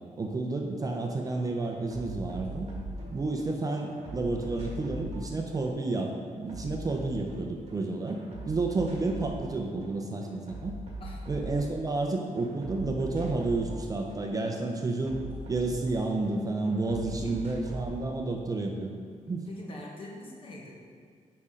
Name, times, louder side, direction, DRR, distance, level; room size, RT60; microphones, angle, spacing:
voice 1, 0.2-2.7 3.1-8.2 8.5-10.7 11.3-15.2 15.5-18.9 19.3-19.4, right 3 dB, 30° right, 2 dB, 0.5 m, -30 dB
sound 1, 0.8-1.0 1.2-3.5 3.8-7.8 8.1-9.5 9.8-12.1 12.4-16.3 16.6-17.9, right 1 dB, 50° right, 1.7 m, -41 dB
voice 2, 17.0-17.4 19.3-20.7, left 1 dB, 45° left, -2 dB, 1.2 m, -44 dB
8.6 x 5.1 x 3.7 m, 2.1 s
wide cardioid pair, 160°, 13 cm